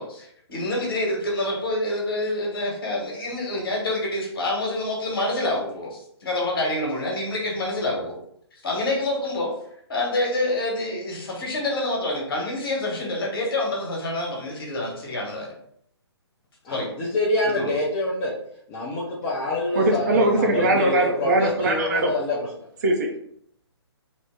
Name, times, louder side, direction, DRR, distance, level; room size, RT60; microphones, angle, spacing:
voice 1, 0.0-8.2 8.6-9.5 9.9-15.5 16.7-16.9 17.4-17.7, left 2 dB, 55° left, -2 dB, 1.1 m, -27 dB
voice 2, 16.6-18.3 18.7-22.4, left 2 dB, 20° left, -6 dB, 0.5 m, -26 dB
voice 3, 19.7-22.1 22.8-23.2, right 1 dB, 40° right, 2 dB, 0.5 m, -21 dB
2.9 x 2.0 x 3.4 m, 0.69 s
figure-of-eight pair, 135°, 14 cm